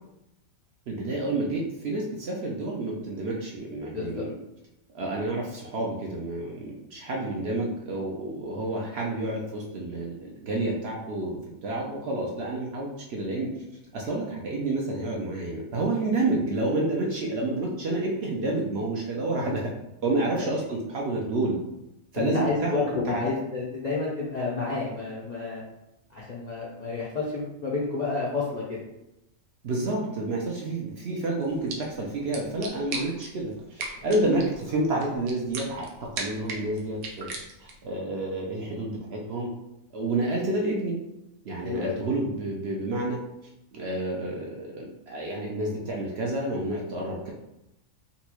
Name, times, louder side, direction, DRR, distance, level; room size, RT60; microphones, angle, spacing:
voice 1, 0.9-4.3 4.9-13.5 13.9-19.6 20.0-21.6 22.1-23.3 29.6-37.3 37.6-39.5 39.9-41.0 41.4-43.2 43.7-47.3, right 2 dB, 65° right, -2 dB, 0.7 m, -29 dB
voice 2, 3.9-4.2 19.4-19.6 20.3-20.5 22.2-25.6 26.1-28.8 33.9-34.0 41.6-42.0, left 3 dB, 60° left, -6 dB, 0.4 m, -30 dB
sound 1, 31.4-37.9, right 3 dB, 85° right, 1.1 m, -39 dB
4.0 x 2.3 x 2.9 m, 0.88 s
omnidirectional pair, 1.5 m